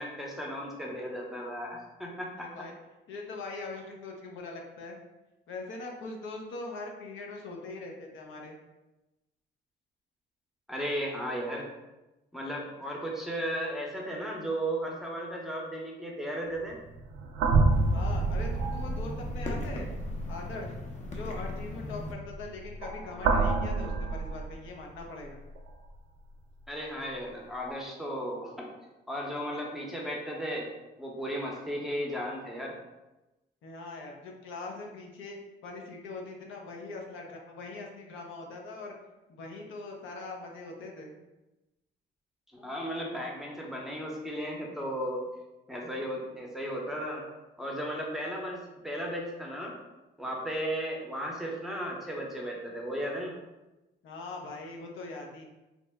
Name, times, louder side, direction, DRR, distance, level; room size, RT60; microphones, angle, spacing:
voice 1, 0.0-2.5 10.7-11.7 12.3-16.8 26.7-28.7 29.1-30.7 31.0-32.8 42.5-45.3 45.7-47.2 47.6-49.7 50.2-53.3, equal, ahead, -2 dB, 0.7 m, -35 dB
voice 2, 2.4-2.7 3.1-5.0 5.5-8.6 17.9-19.9 20.3-20.7 21.1-25.4 33.6-35.4 35.6-39.0 39.3-41.1 54.0-55.4, left 3 dB, 80° left, 0 dB, 0.6 m, -41 dB
sound 1, 16.6-25.0 25.6-25.7 27.7-27.8, right 3 dB, 85° right, 0.4 m, -29 dB
sound 2, 17.5-22.1, left 2 dB, 35° left, 0.6 m, -41 dB
2.9 x 2.0 x 3.4 m, 1.0 s
cardioid pair, 90°, 20 cm